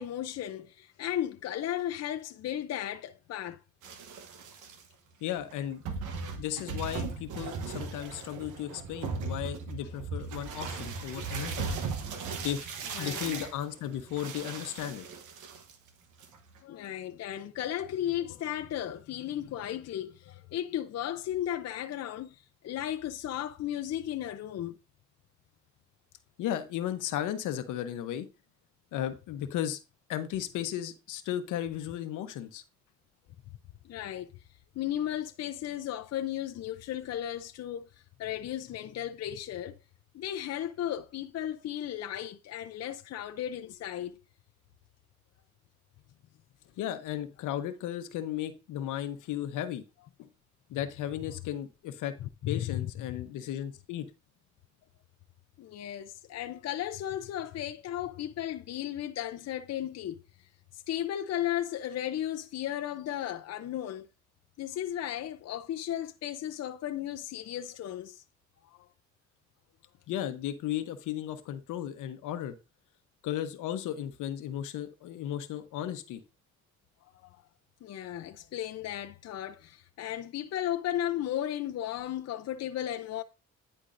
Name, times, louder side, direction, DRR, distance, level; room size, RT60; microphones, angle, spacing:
voice 1, 0.0-3.6 12.9-13.3 16.6-24.7 33.8-34.3 34.8-37.9 38.2-39.8 40.1-44.2 52.2-52.9 55.6-60.2 60.7-64.1 64.6-68.2 77.2-77.3 77.8-83.2, left 11 dB, 55° left, 0.6 m, -35 dB
sound 1, 3.8-4.8 5.5-5.6 5.8-15.9 16.2-16.6, right 4 dB, 85° right, 1.1 m, -37 dB
voice 2, 5.2-5.8 6.4-11.7 12.4-12.7 13.0-15.1 26.4-28.3 28.9-29.8 30.1-32.6 46.8-49.8 50.2-50.3 50.7-52.1 52.5-54.1 70.1-72.5 73.2-76.2, left 11 dB, 90° left, 0.9 m, -35 dB
10.0 x 4.4 x 2.6 m
cardioid pair, 90°, 30 cm